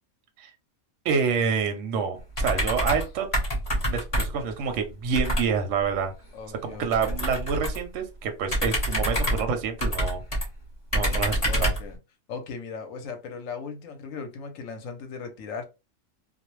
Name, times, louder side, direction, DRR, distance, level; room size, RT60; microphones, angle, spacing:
voice 1, 1.0-3.3 3.9-6.1 6.6-10.2 10.9-11.7, right 6 dB, 65° right, 0.8 m, -27 dB
sound 1, 2.3-3.1 3.3-4.5 5.1-5.5 6.9-7.9 8.5-10.5 10.9-11.9, equal, 30° left, 0.7 m, -26 dB
voice 2, 6.3-7.2 11.5-12.0 12.3-15.6, left 5 dB, 70° left, 0.9 m, -38 dB
2.4 x 2.0 x 3.0 m
omnidirectional pair, 1.6 m